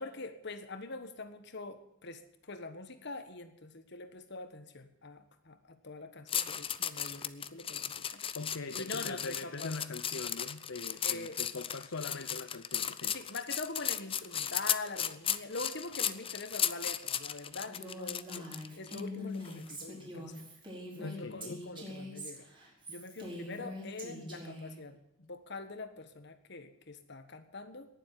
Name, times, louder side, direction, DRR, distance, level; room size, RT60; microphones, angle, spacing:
voice 1, 0.0-8.3 8.7-9.8 11.0-11.4 13.1-20.5 20.9-22.5 22.9-27.9, left 3 dB, 60° left, 9 dB, 1.5 m, -44 dB
sound 1, 6.3-19.0 19.4-19.7, left 9 dB, 25° left, 0.6 m, -35 dB
voice 2, 8.3-13.2 21.0-21.7, left 3 dB, 75° left, 10 dB, 0.8 m, -42 dB
Female speech woman speaking, 17.7-24.7, left 1 dB, 25° right, 4.5 m, -44 dB
18.5 x 7.6 x 9.8 m, 0.79 s
head